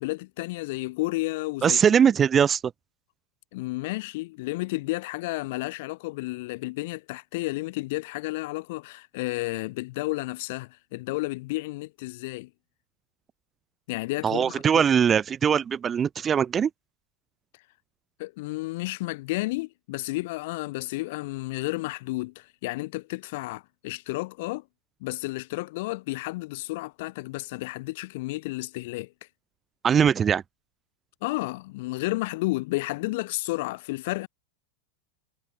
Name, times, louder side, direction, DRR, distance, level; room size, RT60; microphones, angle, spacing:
voice 1, 0.0-1.8 3.5-12.5 13.9-14.8 17.5-17.6 18.2-24.6 25.0-29.3 31.2-34.3, left 21 dB, 50° left, 0.6 m, -32 dB
voice 2, 1.6-2.6 14.2-16.7 29.8-30.4, right 7 dB, 20° right, 0.3 m, -21 dB
figure-of-eight pair, 90°, 0 cm